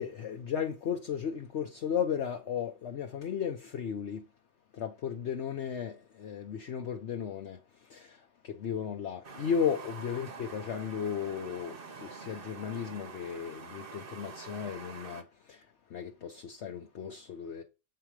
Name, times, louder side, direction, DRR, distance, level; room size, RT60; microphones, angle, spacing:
voice 1, 0.0-4.2 4.7-17.6, left 7 dB, 55° left, 1.0 m, -35 dB
sound 1, 9.2-15.2, right 5 dB, 40° right, 1.0 m, -46 dB
7.8 x 4.5 x 4.8 m
omnidirectional pair, 1.6 m